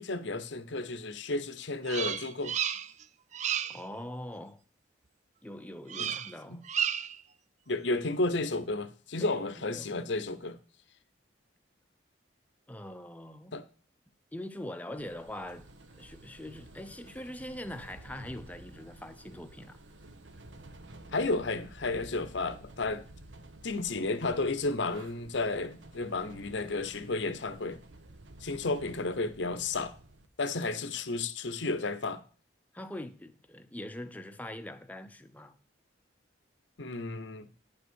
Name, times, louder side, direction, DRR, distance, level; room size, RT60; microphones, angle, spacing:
voice 1, 0.0-2.5 6.0-6.1 6.5-6.6 7.7-10.6 13.5-13.6 21.1-23.0 23.6-27.8 28.4-29.9 30.4-32.2 36.8-37.5, left 3 dB, 70° left, 0.9 m, -32 dB
Bird vocalization bird call bird song, 1.9-3.0 3.3-3.8 5.9-6.3 6.6-7.2, right 9 dB, 35° right, 0.4 m, -32 dB
voice 2, 3.7-4.6 5.4-6.7 9.2-10.1 12.7-13.5 14.3-15.7 16.0-19.8 32.7-35.6, left 1 dB, 10° left, 0.7 m, -43 dB
sound 1, 15.0-30.3, right 1 dB, 75° right, 1.1 m, -52 dB
10.0 x 5.5 x 6.2 m
head